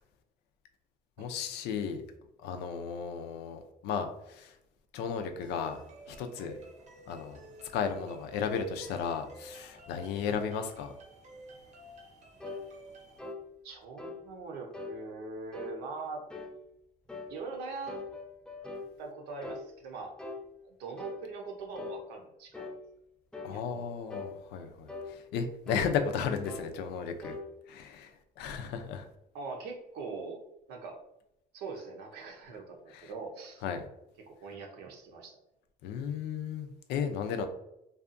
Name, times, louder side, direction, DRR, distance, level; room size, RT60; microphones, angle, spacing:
voice 1, 1.2-2.0 2.4-4.5 4.9-5.8 6.1-6.5 7.1-7.4 7.7-10.9 23.4-27.3 27.7-29.1 32.9-33.0 33.6-33.8 35.8-37.5, left 6 dB, 80° left, 0.4 m, -34 dB
sound 1, 5.4-13.2, right 1 dB, 45° right, 0.7 m, -52 dB
sound 2, 12.4-12.7 13.2-13.4 14.0-14.2 14.7-15.0 15.5-15.8 16.3-16.6 17.1-17.3 17.9-18.9 19.4-19.7 20.2-20.4 21.0-21.2 21.8-22.0 22.5-22.8 23.3-23.6 24.1-24.3 24.9-25.1 25.7-25.9 26.4-26.7 27.2-27.5, left 3 dB, 5° left, 0.3 m, -41 dB
voice 2, 13.6-16.2 17.3-18.0 19.0-20.1 20.6-22.7 23.3-23.9 29.3-30.4 30.7-31.0 31.5-33.6 34.2-35.4, right 4 dB, 85° right, 0.7 m, -42 dB
2.7 x 2.3 x 2.5 m
cardioid pair, 110°, 17 cm